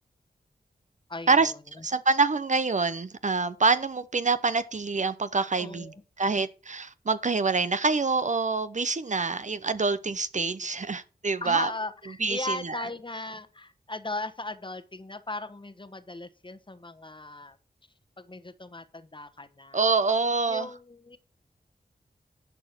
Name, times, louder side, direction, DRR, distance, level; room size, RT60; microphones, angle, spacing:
voice 1, 1.1-1.9 5.6-6.0 11.4-17.6 18.2-19.9 20.5-21.2, left 2 dB, 30° left, 1.2 m, -38 dB
voice 2, 1.8-11.7 12.2-12.7 19.7-20.7, right 4 dB, 45° right, 0.7 m, -26 dB
11.0 x 5.0 x 6.0 m
cardioid pair, 45°, 17 cm